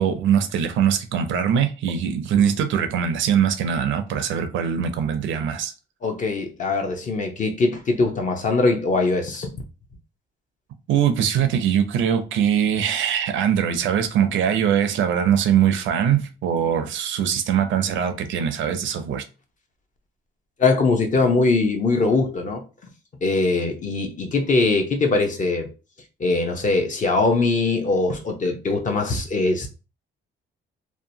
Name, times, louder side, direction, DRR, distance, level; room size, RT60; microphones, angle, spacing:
voice 1, 0.0-5.7 10.9-19.2, right 8 dB, 75° right, 0.5 m, -22 dB
voice 2, 6.0-9.5 20.6-22.6 23.2-25.7 26.2-29.7, left 3 dB, 40° left, 0.7 m, -21 dB
2.8 x 2.1 x 2.7 m
cardioid pair, 90°, 20 cm